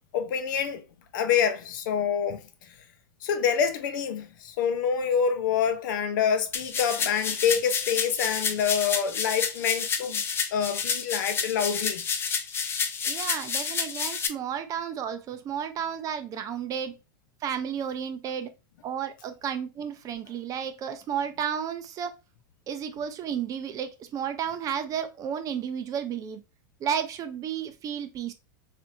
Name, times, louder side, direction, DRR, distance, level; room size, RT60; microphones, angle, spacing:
voice 1, 0.1-0.8 1.1-2.7 3.2-10.2 10.5-12.0, left 7 dB, 70° left, 0.7 m, -26 dB
sound 1, 6.5-14.3, left 6 dB, 20° left, 0.4 m, -29 dB
voice 2, 13.0-16.9 17.4-18.5 18.8-22.1 22.7-26.4 26.8-28.3, right 8 dB, 30° right, 0.5 m, -32 dB
3.3 x 2.7 x 2.5 m
hypercardioid pair, 115°, 11 cm